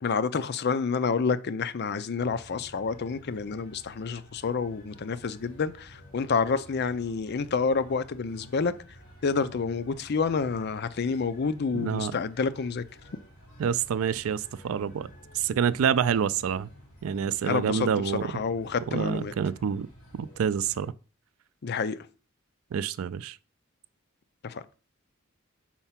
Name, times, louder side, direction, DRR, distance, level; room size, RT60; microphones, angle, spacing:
voice 1, 0.0-8.7 9.2-12.8 17.4-17.9 18.2-19.3 21.6-22.0 24.4-24.6, left 5 dB, 50° left, 0.5 m, -28 dB
sound 1, 2.2-20.9, equal, 35° left, 3.0 m, -52 dB
voice 2, 11.7-12.2 13.6-15.1 15.3-16.7 17.0-18.3 18.9-19.9 20.1-20.9 22.7-23.4, right 7 dB, 85° right, 0.4 m, -27 dB
4.5 x 4.4 x 5.7 m
head